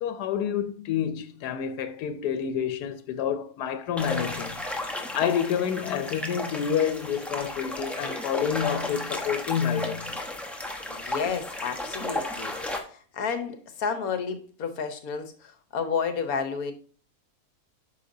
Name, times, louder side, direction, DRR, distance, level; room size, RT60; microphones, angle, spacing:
voice 1, 0.0-4.6 5.1-10.2, left 8 dB, 90° left, 1.2 m, -28 dB
sound 1, 4.0-12.8, left 1 dB, ahead, 0.7 m, -34 dB
voice 2, 10.9-12.5 12.9-16.7, left 6 dB, 70° left, 1.4 m, -31 dB
8.3 x 5.9 x 2.7 m
omnidirectional pair, 1.7 m